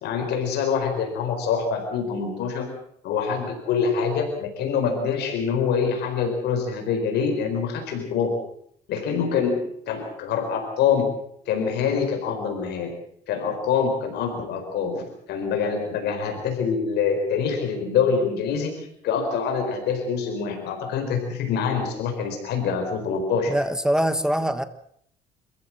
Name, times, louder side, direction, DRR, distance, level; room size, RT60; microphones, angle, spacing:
voice 1, 0.0-2.7 3.0-8.3 8.9-11.1 11.5-12.9 13.3-23.5, left 6 dB, 80° left, 4 dB, 4.5 m, -25 dB
voice 2, 23.5-24.7, equal, 5° right, 12 dB, 1.1 m, -23 dB
26.5 x 15.0 x 7.5 m, 0.69 s
cardioid pair, 110°, 17 cm